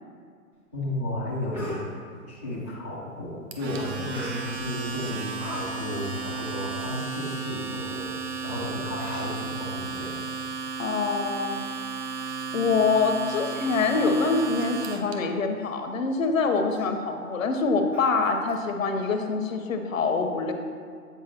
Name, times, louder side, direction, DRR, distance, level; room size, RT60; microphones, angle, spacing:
voice 1, 0.7-2.0 2.3-8.1 8.4-10.2, left 1 dB, 10° left, -11 dB, 0.3 m, -33 dB
Speech, 0.8-0.9 1.3-1.8 4.1-4.7 5.1-5.6 5.9-6.1 6.6-6.7 6.9-7.1 7.9-8.0 8.6-8.7 9.0-9.4 10.0-10.2 10.7-11.3 11.6-11.8 12.3-12.4 12.9-13.0 13.4-13.5 13.8-14.2 14.5-14.7 15.0-15.2 15.6-15.7 16.1-16.3 16.7-16.9 17.9-18.6 19.0-19.1, right 1 dB, 5° right, 0.7 m, -42 dB
Domestic sounds home sounds, 3.5-15.1, right 5 dB, 45° right, 0.7 m, -34 dB
voice 2, 10.8-11.6 12.5-20.5, left 4 dB, 60° left, 5 dB, 0.8 m, -25 dB
8.1 x 4.6 x 2.9 m, 2.1 s
figure-of-eight pair, 130°, 45 cm